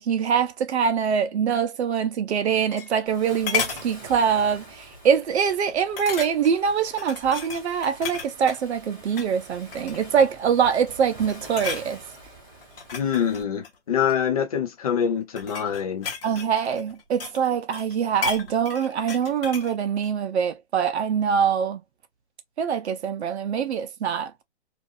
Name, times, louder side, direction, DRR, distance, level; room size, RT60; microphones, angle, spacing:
voice 1, 0.0-12.0 16.2-21.8 22.6-24.4, right 7 dB, 75° right, 0.6 m, -24 dB
sound 1, 2.3-3.2 3.5-3.9 4.4-4.6 4.9-5.0 6.0-6.6 7.0-8.6 9.1-9.3 9.7-10.2 10.8-11.0 11.3-11.9 12.6-14.2 15.0-17.5 17.7-19.7 20.0-20.1, left 7 dB, 60° left, 1.0 m, -33 dB
Waves surf, 3.1-13.4, right 1 dB, 10° right, 1.2 m, -46 dB
voice 2, 12.9-16.1, left 8 dB, 35° left, 0.6 m, -25 dB
2.5 x 2.5 x 2.5 m
hypercardioid pair, 175°, 33 cm